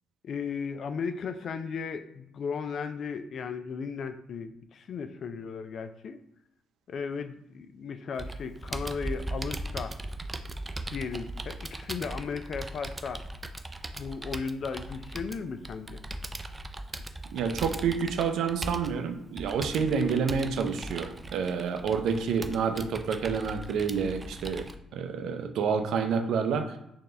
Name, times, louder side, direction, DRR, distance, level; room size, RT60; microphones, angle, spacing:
voice 1, 0.2-6.2 6.9-10.0 10.9-13.2 14.0-16.0, left 5 dB, 60° left, 10 dB, 0.4 m, -36 dB
Computer keyboard, 8.2-24.7, right 1 dB, 20° right, 0.3 m, -39 dB
voice 2, 17.3-24.7 24.9-26.8, right 6 dB, 80° right, 6 dB, 0.5 m, -28 dB
4.3 x 2.8 x 3.2 m, 0.83 s
cardioid pair, 90°, 0 cm